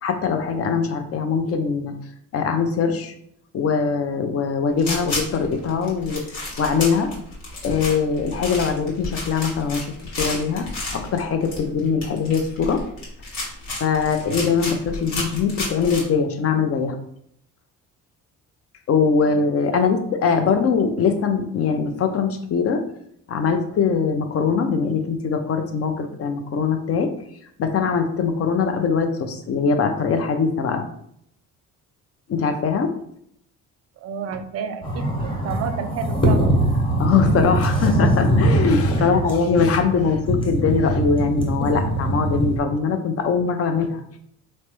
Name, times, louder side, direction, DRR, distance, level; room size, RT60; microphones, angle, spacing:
voice 1, 0.0-1.9 2.3-3.1 3.5-6.2 6.6-7.1 7.6-9.9 10.2-12.8 13.8-17.0 18.9-22.8 23.3-27.1 27.6-30.8 32.3-32.9 37.0-44.0, left 5 dB, 45° left, 7 dB, 0.5 m, -22 dB
sound 1, 4.8-16.0, left 2 dB, 80° left, 1.2 m, -31 dB
voice 2, 34.0-36.5 39.0-39.2, right 6 dB, 45° right, 9 dB, 0.4 m, -31 dB
sound 2, 34.8-42.6, right 1 dB, 15° left, 1.0 m, -22 dB
3.2 x 2.1 x 3.0 m, 0.69 s
supercardioid pair, 70°, 34 cm